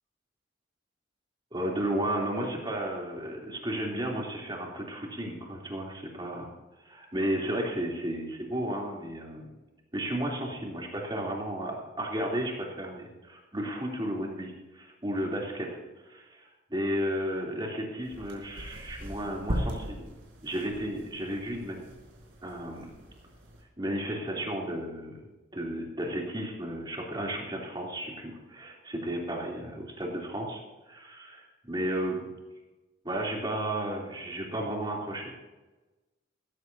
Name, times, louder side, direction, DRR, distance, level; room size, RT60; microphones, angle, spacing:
voice 1, 1.5-6.5 6.8-9.5 9.9-15.7 16.0-20.0 20.4-21.9 22.4-22.9 23.8-25.2 25.5-32.3 33.0-35.3, right 1 dB, 25° right, -2 dB, 3.3 m, -33 dB
sound 1, 18.0-23.6, equal, 90° right, 4.5 m, -39 dB
16.0 x 15.0 x 2.8 m, 1.1 s
head